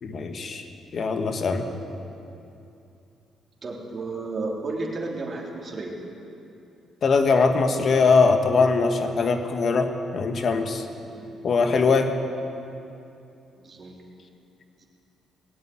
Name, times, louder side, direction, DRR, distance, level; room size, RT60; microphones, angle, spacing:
voice 1, 0.0-0.6 0.9-1.7 7.0-10.8 11.4-12.1, left 4 dB, 50° left, 6 dB, 1.4 m, -21 dB
voice 2, 3.6-5.9 11.0-11.3 13.6-14.3, right 3 dB, 40° right, -2 dB, 3.1 m, -33 dB
19.0 x 8.3 x 9.1 m, 2.7 s
cardioid pair, 90°, 0 cm